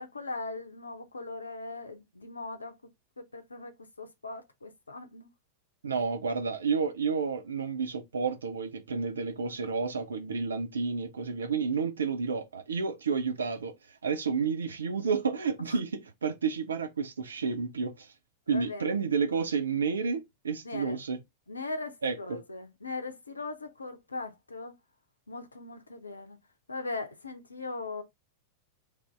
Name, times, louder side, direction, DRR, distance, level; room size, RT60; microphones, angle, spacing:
voice 1, 0.0-2.7 3.2-3.7 4.0-5.3 15.7-15.8 18.5-18.9 20.6-21.0 21.5-24.7 25.3-26.4 26.7-28.0, left 3 dB, 80° left, 0.6 m, -39 dB
voice 2, 5.8-13.7 14.0-18.1 18.5-21.2 22.0-22.4, right 5 dB, 70° right, 0.5 m, -30 dB
3.4 x 2.6 x 3.3 m
figure-of-eight pair, 90°, 0 cm